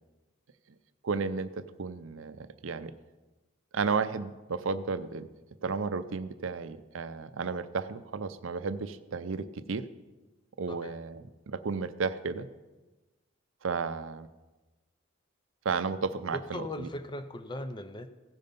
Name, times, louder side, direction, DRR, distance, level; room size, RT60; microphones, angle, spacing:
voice 1, 1.0-2.9 3.7-5.3 5.6-9.9 10.6-12.5 13.6-14.3 15.6-16.9, right 4 dB, 75° right, 12 dB, 0.5 m, -33 dB
voice 2, 16.3-18.1, left 1 dB, 20° left, 9 dB, 0.5 m, -38 dB
16.0 x 5.4 x 5.3 m, 1.2 s
head